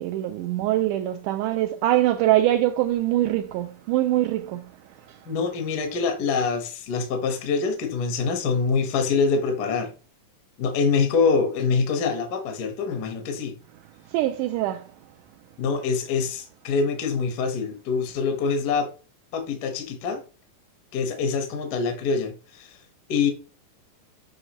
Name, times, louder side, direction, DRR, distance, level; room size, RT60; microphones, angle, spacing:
voice 1, 0.0-4.7 14.1-14.9, right 14 dB, 85° right, 2.1 m, -23 dB
voice 2, 5.3-9.9 10.6-13.5 15.6-18.9 19.3-20.2 20.9-22.8 23.1-23.3, left 5 dB, 65° left, 1.0 m, -25 dB
7.2 x 5.3 x 3.0 m
omnidirectional pair, 3.7 m